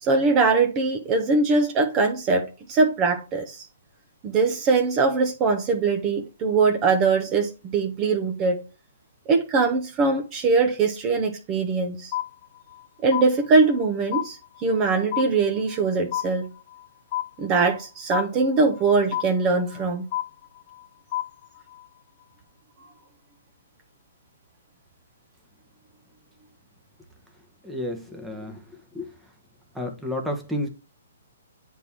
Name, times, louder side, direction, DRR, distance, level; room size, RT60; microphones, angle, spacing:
voice 1, 0.0-3.7 4.2-8.6 9.3-12.1 13.0-16.5 17.4-20.1 22.8-22.9, right 4 dB, 25° right, 0.9 m, -22 dB
sound 1, 12.1-12.8 13.1-13.9 14.1-14.9 15.1-15.9 16.1-16.9 17.1-17.9 18.1-18.9 19.1-19.9 20.1-20.9 21.1-21.9, left 14 dB, 40° left, 0.3 m, -31 dB
voice 2, 27.6-29.1 29.7-30.7, left 1 dB, 5° right, 1.2 m, -31 dB
8.1 x 3.6 x 4.4 m
hypercardioid pair, 145°, 0 cm